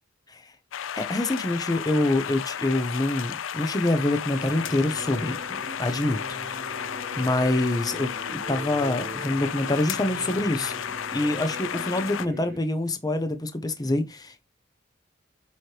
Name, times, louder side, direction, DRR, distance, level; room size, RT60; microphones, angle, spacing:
sound 1, 0.7-12.3, left 9 dB, 75° left, 0.5 m, -33 dB
voice 1, 1.0-6.4 6.8-10.7 11.1-14.4, left 1 dB, 20° left, 0.8 m, -26 dB
sound 2, 4.3-12.6, right 1 dB, 50° right, 1.3 m, -41 dB
7.6 x 3.2 x 4.7 m
head